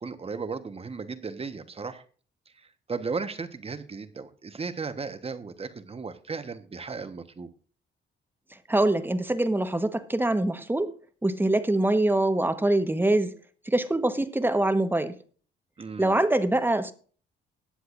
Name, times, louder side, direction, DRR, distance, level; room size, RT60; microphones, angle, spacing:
voice 1, 0.0-2.0 2.6-7.5 15.8-16.2, right 4 dB, 30° right, 1.3 m, -35 dB
voice 2, 8.7-10.9 11.2-13.3 13.7-15.1 16.0-16.9, right 1 dB, 10° right, 1.2 m, -24 dB
20.0 x 7.9 x 2.6 m
cardioid pair, 90°, 20 cm